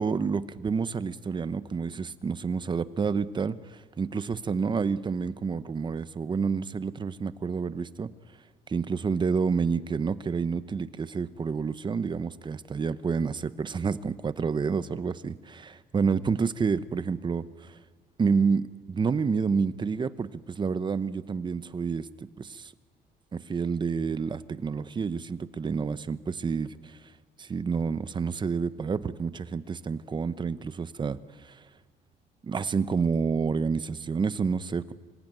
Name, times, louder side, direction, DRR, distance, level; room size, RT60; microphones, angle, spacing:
voice 1, 0.0-8.1 8.7-17.8 18.2-22.7 23.3-27.0 27.4-31.6 32.4-34.9, right 5 dB, 25° right, 14 dB, 0.9 m, -29 dB
26.0 x 16.5 x 9.1 m, 1.4 s
cardioid pair, 110°, 17 cm